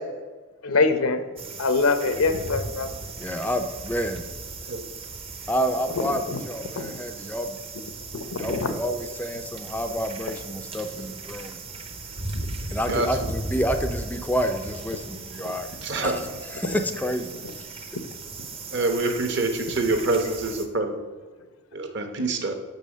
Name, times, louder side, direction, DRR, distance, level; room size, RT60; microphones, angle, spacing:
voice 1, 0.6-1.2 1.6-2.9 6.0-6.4 6.7-7.0 8.3-8.7 12.3-12.5 15.4-15.5, left 3 dB, 80° left, 9 dB, 0.8 m, -24 dB
sound 1, 1.4-20.7, right 3 dB, 25° right, 0.6 m, -37 dB
voice 2, 3.2-4.2 5.5-7.6 8.4-11.6 12.7-15.7 16.0-16.2 16.5-17.3 17.6-17.9, equal, 10° left, 7 dB, 0.4 m, -29 dB
voice 3, 15.8-16.2 18.7-21.0 21.7-22.5, right 2 dB, 55° right, 5 dB, 1.0 m, -25 dB
6.7 x 5.5 x 6.3 m, 1.3 s
head